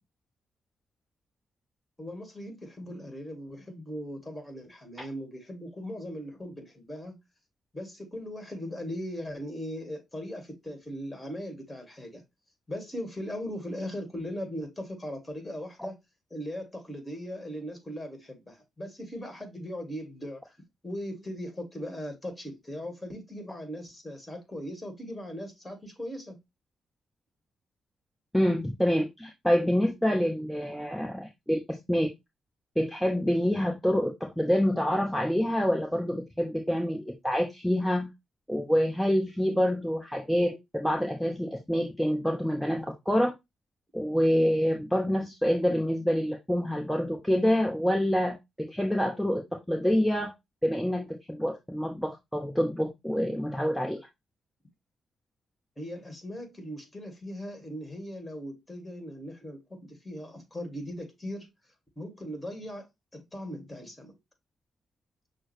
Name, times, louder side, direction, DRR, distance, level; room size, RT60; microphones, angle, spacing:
voice 1, 2.0-7.2 7.7-12.2 12.7-16.0 16.3-20.6 20.8-26.4 55.8-61.5 62.0-62.8 63.1-64.1, equal, 20° left, 1.9 m, -39 dB
voice 2, 28.3-32.1 32.8-38.1 38.5-43.3 43.9-49.4 49.7-50.3 50.6-54.1, equal, 5° left, 0.9 m, -27 dB
6.0 x 2.2 x 3.2 m
hypercardioid pair, 40°, 0 cm